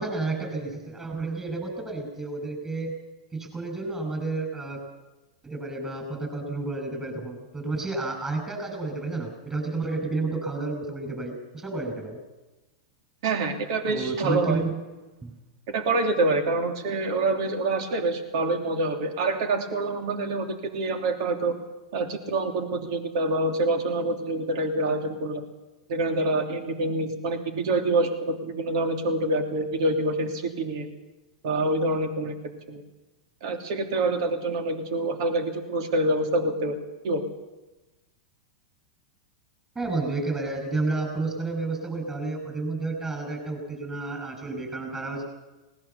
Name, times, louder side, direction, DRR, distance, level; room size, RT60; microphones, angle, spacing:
voice 1, 0.0-3.0 3.3-4.9 5.4-12.2 13.9-14.7 15.2-15.3 39.7-45.2, right 3 dB, 20° right, 4 dB, 6.1 m, -31 dB
voice 2, 13.2-14.6 15.7-21.6 21.9-25.4 25.9-30.9 31.4-32.4 32.7-32.8 33.4-36.7 37.0-37.2, right 2 dB, 60° right, 5 dB, 3.0 m, -26 dB
19.5 x 18.5 x 7.1 m, 1.1 s
hypercardioid pair, 115°, 3 cm